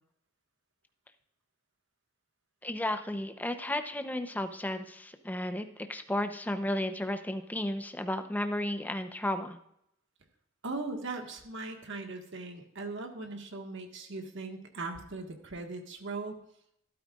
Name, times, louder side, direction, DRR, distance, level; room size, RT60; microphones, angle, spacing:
voice 1, 2.6-9.6, left 1 dB, 10° left, 8 dB, 0.7 m, -33 dB
voice 2, 10.6-16.4, right 3 dB, 65° right, 4 dB, 1.6 m, -39 dB
13.0 x 12.0 x 2.4 m, 0.74 s
head